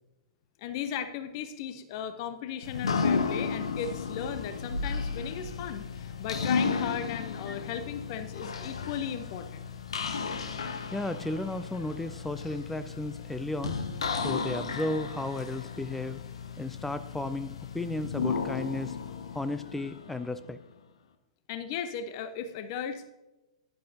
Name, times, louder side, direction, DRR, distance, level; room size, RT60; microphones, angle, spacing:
voice 1, 0.6-9.6 21.5-23.1, left 8 dB, 45° left, 11 dB, 0.6 m, -36 dB
sound 1, 2.6-20.5, left 5 dB, 70° left, 0.9 m, -34 dB
voice 2, 10.9-13.8 14.2-16.2 16.6-19.0 19.3-20.6, left 2 dB, 5° left, 12 dB, 0.4 m, -34 dB
11.0 x 10.0 x 2.8 m, 1.0 s
figure-of-eight pair, 105°, 3 cm